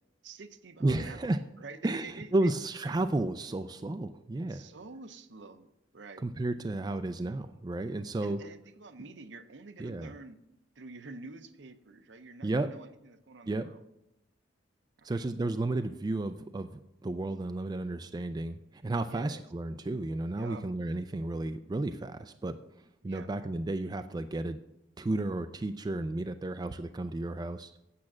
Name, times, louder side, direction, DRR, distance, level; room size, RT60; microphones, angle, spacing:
voice 1, 0.2-2.5 4.5-6.3 8.2-10.4 10.8-13.8 15.0-15.2 19.1-19.4 20.4-20.6 23.0-23.3, right 3 dB, 65° right, 10 dB, 0.7 m, -48 dB
voice 2, 0.8-1.4 1.8-4.6 6.2-8.4 9.8-10.1 12.4-12.7 13.5-13.7 15.0-22.6 23.0-24.6 25.0-27.8, right 2 dB, 20° right, 9 dB, 0.3 m, -32 dB
8.5 x 7.5 x 6.1 m, 0.85 s
head